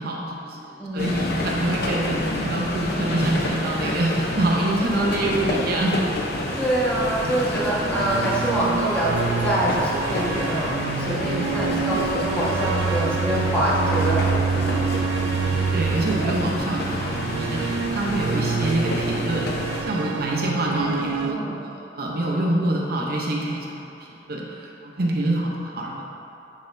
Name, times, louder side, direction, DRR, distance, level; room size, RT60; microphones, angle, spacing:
voice 1, 0.0-0.7 0.9-6.0 15.7-19.5 19.9-23.9 24.3-26.0, right 1 dB, 60° right, -2 dB, 0.7 m, -26 dB
voice 2, 0.8-1.4 3.8-4.0 6.5-14.8 20.8-21.6, right 1 dB, 10° left, -9 dB, 1.4 m, -25 dB
sound 1, 1.0-19.8, left 1 dB, 60° left, 0.8 m, -29 dB
sound 2, 7.5-21.3, right 5 dB, 80° right, 0.3 m, -27 dB
10.5 x 4.2 x 2.6 m, 2.8 s
head